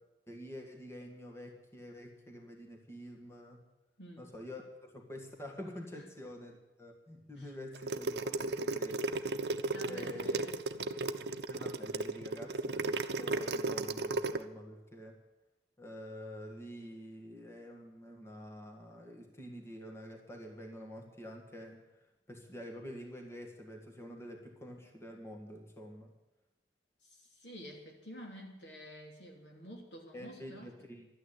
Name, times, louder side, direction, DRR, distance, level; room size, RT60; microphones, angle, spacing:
voice 1, 0.3-3.6 4.2-9.3 9.9-10.4 11.5-15.2 15.8-21.9 22.3-26.1 30.1-31.1, left 1 dB, 15° left, 1 dB, 1.8 m, -47 dB
sound 1, 7.7-14.4, right 3 dB, 65° right, 0.7 m, -34 dB
voice 2, 9.7-11.0 27.0-30.7, equal, 75° left, 1 dB, 3.0 m, -50 dB
12.5 x 9.5 x 10.0 m, 1.0 s
head